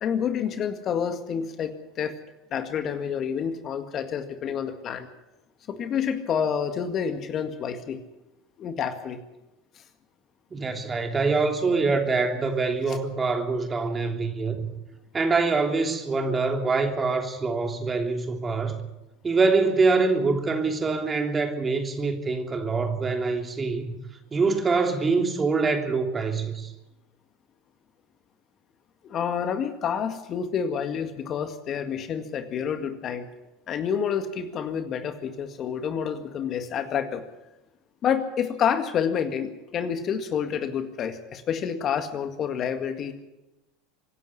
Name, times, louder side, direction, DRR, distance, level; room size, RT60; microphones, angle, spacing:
voice 1, 0.0-2.1 2.5-5.1 5.7-8.0 8.6-9.2 12.9-13.0 29.0-33.2 33.7-37.2 38.0-43.1, left 7 dB, 40° left, 1.9 m, -28 dB
voice 2, 10.5-14.7 15.1-18.8 19.2-23.9 24.3-26.7, right 4 dB, 25° right, 3.2 m, -24 dB
25.0 x 11.0 x 9.9 m
hypercardioid pair, 80°, 0 cm